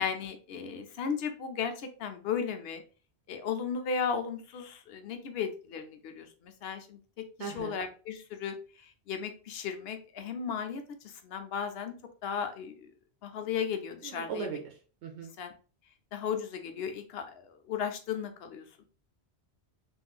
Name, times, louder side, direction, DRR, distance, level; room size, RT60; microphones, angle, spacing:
voice 1, 0.0-2.8 3.3-7.0 7.5-8.6 8.8-11.9 12.2-12.7 13.2-14.5 15.4-15.5 16.1-18.8, left 6 dB, 70° left, 7 dB, 0.8 m, -35 dB
voice 2, 7.4-7.8 14.0-15.3, right 5 dB, 85° right, 2 dB, 0.9 m, -38 dB
3.6 x 2.5 x 2.3 m, 0.38 s
omnidirectional pair, 1.1 m